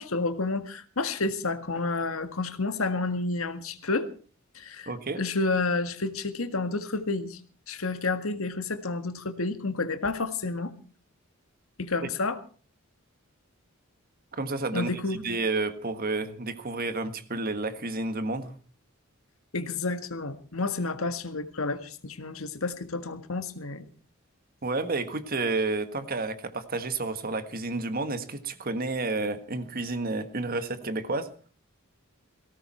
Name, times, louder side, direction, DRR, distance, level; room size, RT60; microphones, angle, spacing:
voice 1, 0.0-4.1 4.6-4.9 5.2-7.4 7.7-10.7 11.8-12.4 14.7-15.2 19.5-23.9, left 3 dB, 75° left, 9 dB, 1.8 m, -30 dB
voice 2, 4.9-5.2 14.3-18.5 24.6-31.3, right 3 dB, 45° right, 11 dB, 1.6 m, -30 dB
19.0 x 17.0 x 4.5 m, 0.40 s
head